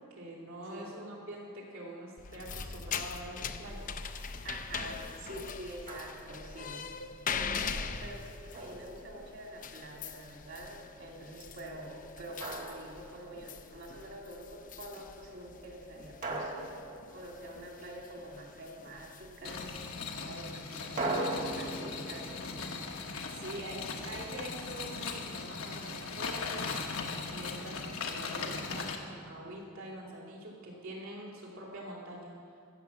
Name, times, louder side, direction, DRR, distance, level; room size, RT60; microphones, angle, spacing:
voice 1, 0.0-3.9 23.3-26.7 27.3-32.6, right 1 dB, 75° right, -2 dB, 3.0 m, -45 dB
sound 1, 2.2-20.3, left 6 dB, 35° left, 0.5 m, -42 dB
voice 2, 4.4-6.8 7.3-16.7 17.1-19.8 20.2-22.4, right 1 dB, 55° right, -1 dB, 2.5 m, -46 dB
Drum, 5.9-6.6 8.5-9.6 12.4-13.6 16.2-17.9 21.0-23.9, right 2 dB, 40° right, 1.5 m, -39 dB
sound 2, 19.4-29.0, left 4 dB, 80° left, 1.2 m, -39 dB
14.5 x 7.4 x 7.2 m, 2.3 s
head